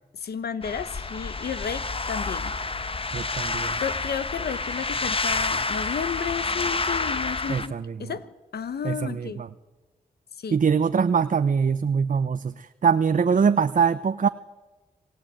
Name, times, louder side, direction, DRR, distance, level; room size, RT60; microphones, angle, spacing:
voice 1, 0.1-2.5 3.8-7.7 8.0-9.4 10.4-10.6, left 7 dB, 85° left, 14 dB, 1.2 m, -32 dB
sound 1, 0.6-7.7, left 3 dB, 35° left, 1.2 m, -29 dB
voice 2, 3.1-3.8 7.5-8.1 8.8-9.5 10.5-14.3, right 6 dB, 55° right, 11 dB, 0.7 m, -23 dB
27.0 x 16.5 x 8.9 m, 1.2 s
cardioid pair, 65°, 16 cm